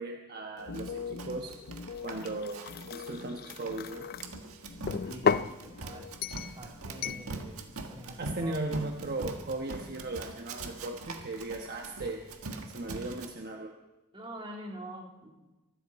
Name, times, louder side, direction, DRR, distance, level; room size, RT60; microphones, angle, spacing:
voice 1, 0.0-1.5 2.0-4.1 8.2-12.2 12.7-13.7, right 2 dB, 45° right, 2 dB, 1.2 m, -37 dB
sound 1, 0.6-6.4 6.7-7.4 7.7-8.1, left 5 dB, 60° left, 0.9 m, -45 dB
Run, 0.7-13.3, right 3 dB, 70° right, 1.7 m, -43 dB
sound 2, 2.0-4.3 4.9-5.5 6.2-6.6 7.0-7.3, left 5 dB, 45° left, 0.4 m, -32 dB
voice 2, 5.0-6.1 6.5-7.6 7.9-8.6 14.1-15.3, right 1 dB, 25° right, 0 dB, 3.0 m, -45 dB
24.0 x 13.5 x 4.3 m, 1.1 s
head